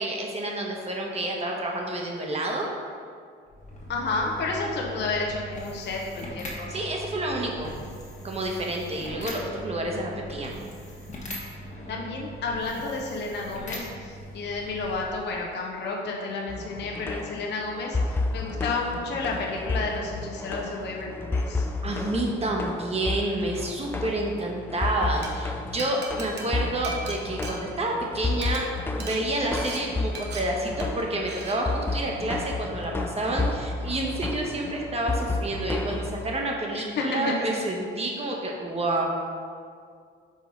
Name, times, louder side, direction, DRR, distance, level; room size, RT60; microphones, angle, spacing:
voice 1, 0.0-2.7 6.7-7.7 8.2-10.5 21.8-28.7 29.0-39.0, right 1 dB, 30° right, -1 dB, 1.0 m, -29 dB
sound 1, 3.5-15.4, equal, 35° left, 1.4 m, -40 dB
voice 2, 3.9-6.8 11.9-21.6 37.0-37.5, left 3 dB, 60° left, -1 dB, 0.9 m, -31 dB
sound 2, 16.5-36.3, left 2 dB, 10° left, 0.3 m, -32 dB
Glass, 25.0-25.3 25.8-28.1 28.3-28.6 29.0-29.2 29.6-29.8 30.2-30.4 30.8-31.0 31.3-31.6, right 3 dB, 55° right, 1.0 m, -38 dB
5.1 x 3.8 x 5.2 m, 2.1 s
cardioid pair, 105°, 20 cm